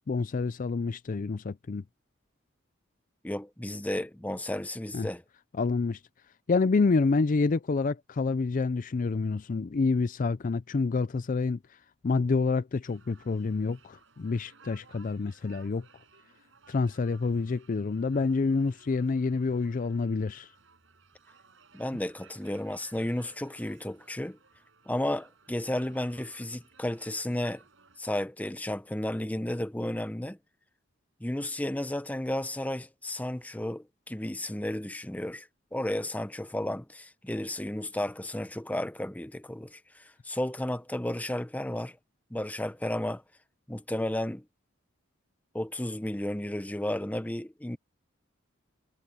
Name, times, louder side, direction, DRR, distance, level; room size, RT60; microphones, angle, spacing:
voice 1, 0.1-1.8 4.9-5.1 5.6-6.0 6.5-11.6 12.0-15.8 16.7-20.5, left 4 dB, 40° left, 0.4 m, -28 dB
voice 2, 3.2-5.2 21.7-24.4 24.9-27.6 28.0-30.4 31.2-42.0 42.3-43.2 43.7-44.4 45.5-47.8, left 1 dB, 10° left, 0.7 m, -33 dB
sound 1, 12.8-28.0, right 5 dB, 70° right, 5.7 m, -59 dB
head